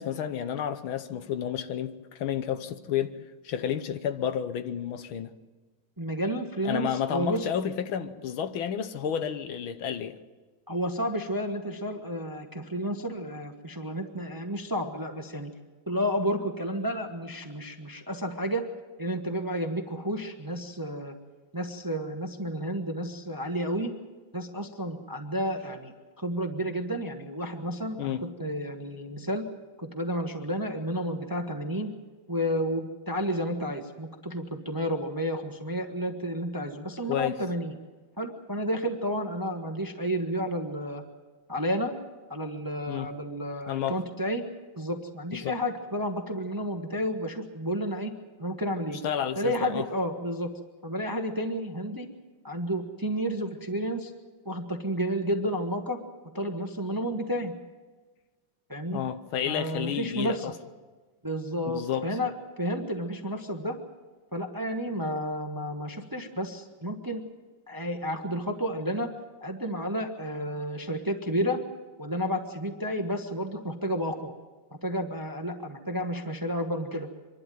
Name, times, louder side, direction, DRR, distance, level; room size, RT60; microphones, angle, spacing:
voice 1, 0.0-3.2 3.4-5.3 6.7-10.2 28.0-28.3 37.1-37.4 42.9-43.1 43.7-44.0 45.3-45.5 49.0-49.9 58.9-60.6 61.7-62.1, left 9 dB, 80° left, 1.8 m, -31 dB
voice 2, 6.0-7.5 10.7-15.5 15.9-18.6 19.0-21.2 21.5-23.9 24.3-29.4 29.8-31.9 32.3-37.8 38.2-41.0 41.5-41.9 42.3-44.4 44.8-48.1 48.4-49.0 49.4-50.5 50.8-52.1 52.4-54.1 54.4-56.0 56.3-57.5 58.7-59.0 59.4-60.5 61.2-63.8 64.3-67.2 67.7-69.1 69.4-71.6 72.0-74.3 74.8-77.1, equal, 15° right, 0.9 m, -31 dB
25.0 x 12.0 x 9.2 m
omnidirectional pair, 2.2 m